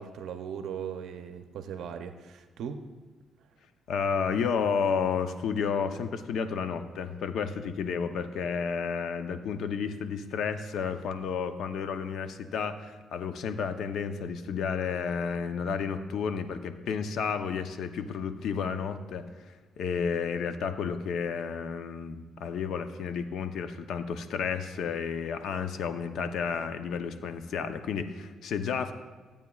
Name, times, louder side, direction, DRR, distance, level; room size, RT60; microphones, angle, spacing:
voice 1, 0.0-2.8, right 7 dB, 75° right, 8 dB, 0.6 m, -38 dB
voice 2, 3.9-19.2 19.8-28.9, left 6 dB, 75° left, 8 dB, 0.7 m, -31 dB
15.0 x 8.7 x 2.4 m, 1.3 s
cardioid pair, 90°, 0 cm